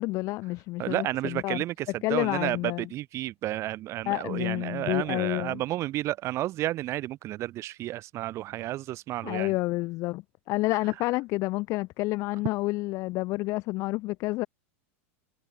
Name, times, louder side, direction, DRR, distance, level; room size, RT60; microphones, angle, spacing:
voice 1, 0.0-1.6 2.0-2.9 4.1-5.6 9.2-14.5, left 21 dB, 45° left, 2.0 m, -29 dB
voice 2, 0.8-9.5, right 15 dB, 40° right, 6.7 m, -31 dB
supercardioid pair, 125°, 7 cm